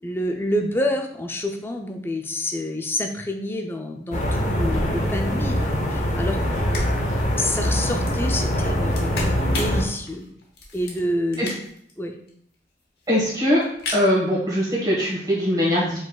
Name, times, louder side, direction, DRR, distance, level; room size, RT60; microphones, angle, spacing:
voice 1, 0.0-6.4 7.4-10.3 10.7-11.5 12.0-12.2, left 1 dB, 15° left, 3 dB, 0.4 m, -28 dB
sound 1, 4.1-9.8, equal, 45° left, 0.7 m, -23 dB
sound 2, 6.4-6.5 6.7-11.9 12.3-12.4 12.5-12.6 12.8-13.3 13.6-14.1, left 2 dB, 65° left, 1.0 m, -34 dB
voice 2, 13.1-13.6 13.9-16.0, equal, 20° right, -6 dB, 1.4 m, -21 dB
5.2 x 3.9 x 2.3 m, 0.67 s
head